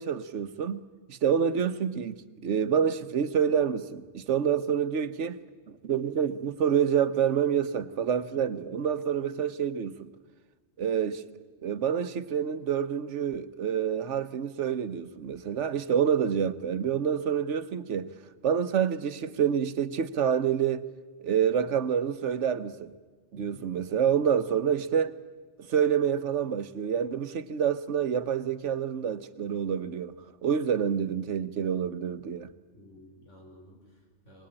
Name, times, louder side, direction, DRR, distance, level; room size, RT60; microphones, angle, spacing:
voice 1, 0.0-5.4 5.7-10.1 10.8-11.2 11.6-18.1 18.4-20.8 21.2-22.9 23.3-25.2 25.7-30.1 30.4-32.5, right 8 dB, 75° right, 1.3 m, -27 dB
voice 2, 23.3-23.6 32.7-34.5, equal, 90° left, 5.4 m, -53 dB
23.5 x 20.5 x 8.8 m
omnidirectional pair, 1.2 m